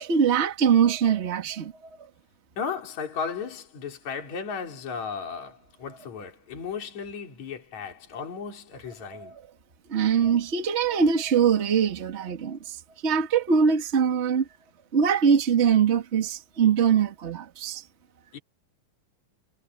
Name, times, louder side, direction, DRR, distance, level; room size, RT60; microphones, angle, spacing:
voice 1, 0.0-1.7 9.2-9.3 9.9-12.8 13.0-14.4 14.9-17.8, right 7 dB, 40° right, 1.0 m, -22 dB
voice 2, 2.6-9.4 18.3-18.4, left 6 dB, 50° left, 5.1 m, -35 dB
omnidirectional pair, 4.4 m